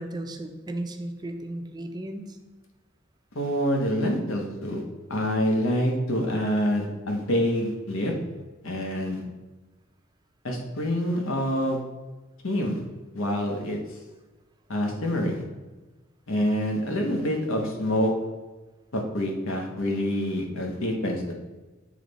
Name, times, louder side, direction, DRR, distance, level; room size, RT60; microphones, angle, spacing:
voice 1, 0.0-2.3, right 1 dB, 20° right, 5 dB, 0.5 m, -35 dB
voice 2, 3.3-4.8 5.1-8.1 8.6-9.2 10.4-11.8 12.4-12.8 13.1-13.8 14.7-15.4 16.3-18.1 18.9-21.3, equal, 90° left, 1 dB, 1.1 m, -26 dB
7.3 x 3.3 x 4.0 m, 1.2 s
head